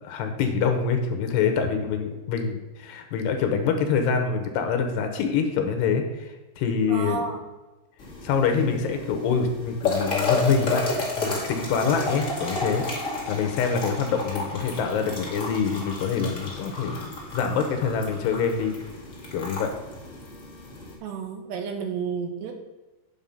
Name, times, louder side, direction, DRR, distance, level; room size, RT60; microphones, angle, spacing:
voice 1, 0.0-7.2 8.2-18.7 19.3-19.7, left 6 dB, 75° left, 6 dB, 3.0 m, -25 dB
voice 2, 6.9-7.4 21.0-22.5, right 6 dB, 75° right, 5 dB, 3.2 m, -31 dB
sound 1, 8.0-21.0, left 3 dB, 30° left, 1.5 m, -32 dB
8.9 x 7.8 x 5.4 m, 1.1 s
omnidirectional pair, 5.1 m